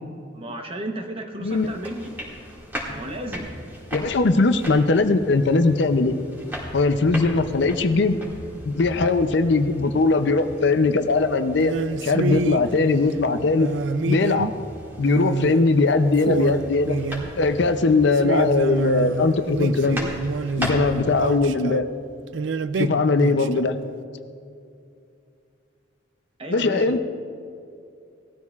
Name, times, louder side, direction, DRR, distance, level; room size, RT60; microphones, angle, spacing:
voice 1, 0.3-2.1 2.9-3.5 26.4-27.0, right 1 dB, 30° right, 4 dB, 0.9 m, -33 dB
sound 1, 1.5-21.4, equal, 10° right, 2.0 m, -38 dB
voice 2, 3.9-6.1 6.7-8.2 8.6-11.7 12.0-13.7 14.0-14.5 15.0-17.0 17.4-20.0 20.6-21.8 22.8-23.7 26.5-27.0, left 3 dB, 60° left, 9 dB, 0.5 m, -20 dB
sound 2, 11.6-12.6 13.6-14.6 15.0-15.6 15.9-17.4 18.1-21.8 22.3-23.7, right 4 dB, 70° right, 0.4 m, -28 dB
18.5 x 13.5 x 2.4 m, 2.4 s
head